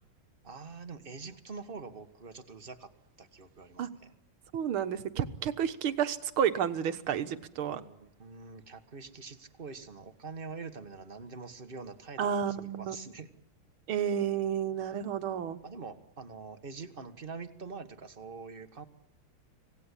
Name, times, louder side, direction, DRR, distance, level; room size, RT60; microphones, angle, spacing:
voice 1, 0.4-2.9 3.2-4.1 7.6-13.3 15.6-18.8, right 4 dB, 30° right, 9 dB, 1.4 m, -45 dB
voice 2, 4.5-7.8 12.2-13.0 13.9-15.6, right 8 dB, 85° right, 11 dB, 2.1 m, -31 dB
26.0 x 18.0 x 9.9 m, 0.76 s
omnidirectional pair, 2.2 m